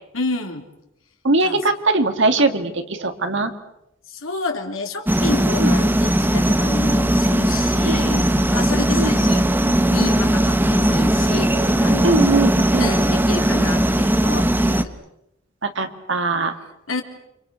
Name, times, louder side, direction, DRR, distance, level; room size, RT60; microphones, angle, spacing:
voice 1, 0.1-0.6 1.4-1.6 4.1-12.3 12.8-14.9 16.9-17.0, left 3 dB, 75° left, 3 dB, 3.6 m, -29 dB
voice 2, 1.2-3.5 5.3-5.8 7.8-8.0 8.9-9.1 12.0-12.9 15.6-16.5, right 2 dB, 60° right, 6 dB, 2.5 m, -21 dB
sound 1, 5.1-14.8, right 1 dB, 10° right, 1.2 m, -18 dB
30.0 x 26.5 x 6.6 m, 0.84 s
head